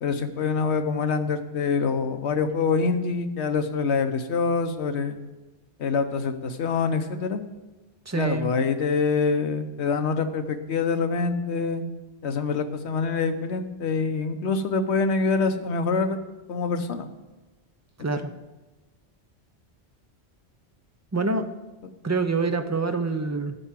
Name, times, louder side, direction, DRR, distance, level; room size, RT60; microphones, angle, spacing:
voice 1, 0.0-5.2 5.8-7.4 8.1-11.8 12.2-16.2 16.5-17.1 18.1-18.2, left 4 dB, 75° left, 8 dB, 1.1 m, -25 dB
voice 2, 8.1-8.5 18.0-18.3 21.1-21.5 22.0-23.6, right 3 dB, 25° right, 8 dB, 0.4 m, -26 dB
12.0 x 4.6 x 7.4 m, 1.1 s
omnidirectional pair, 1.1 m